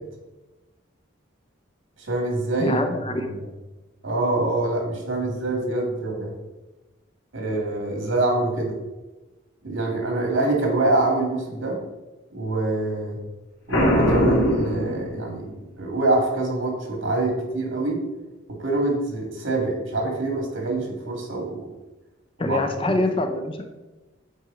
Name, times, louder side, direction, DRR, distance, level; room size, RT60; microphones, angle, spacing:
voice 1, 2.0-2.8 3.1-3.3 4.0-6.3 7.3-8.8 9.6-11.8 12.3-13.2 13.7-15.4 15.8-18.0 18.6-21.7 22.4-22.6 22.9-23.0, right 2 dB, 80° right, 1 dB, 2.0 m, -25 dB
voice 2, 2.6-3.4 22.4-23.7, left 2 dB, 25° left, 6 dB, 0.6 m, -25 dB
Boom, 13.7-15.6, equal, 85° left, 1.8 m, -21 dB
8.2 x 4.4 x 3.7 m, 1.1 s
head